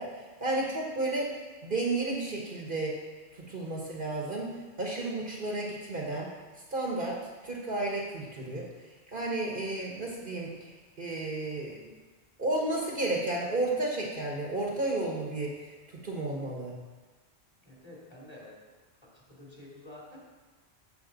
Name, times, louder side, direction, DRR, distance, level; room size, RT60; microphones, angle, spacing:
voice 1, 0.0-2.9 3.5-4.5 4.8-6.3 6.7-7.2 7.4-8.7 9.1-11.9 12.4-16.8, right 2 dB, 50° right, -2 dB, 1.4 m, -32 dB
voice 2, 17.6-18.6 19.1-20.2, left 1 dB, 25° left, -5 dB, 2.8 m, -49 dB
14.5 x 5.6 x 4.0 m, 1.3 s
omnidirectional pair, 1.2 m